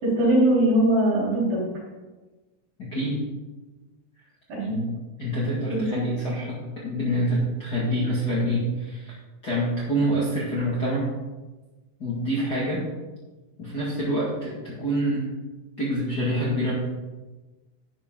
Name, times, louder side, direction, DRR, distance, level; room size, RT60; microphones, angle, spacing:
voice 1, 0.0-1.6 4.5-4.8 5.7-6.0, right 1 dB, 50° right, -9 dB, 5.1 m, -21 dB
voice 2, 2.8-3.2 4.7-4.8 5.2-9.1 9.4-11.1 12.0-12.9 13.6-15.3 15.8-16.7, equal, 70° left, -7 dB, 0.9 m, -26 dB
11.5 x 10.5 x 3.8 m, 1.2 s
omnidirectional pair, 5.7 m